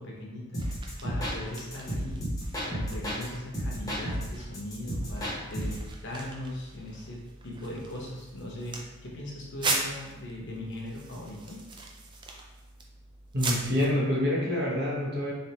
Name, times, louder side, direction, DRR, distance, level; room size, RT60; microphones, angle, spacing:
voice 1, 0.0-2.2 2.6-11.6, left 1 dB, 55° left, -2 dB, 0.9 m, -39 dB
sound 1, 0.5-3.2 3.5-5.9, equal, 15° left, 0.9 m, -33 dB
sound 2, 0.6-13.9, right 3 dB, 20° right, 0.3 m, -39 dB
voice 2, 13.3-15.3, left 1 dB, 45° right, -4 dB, 0.9 m, -27 dB
4.0 x 3.3 x 2.8 m, 1.2 s
head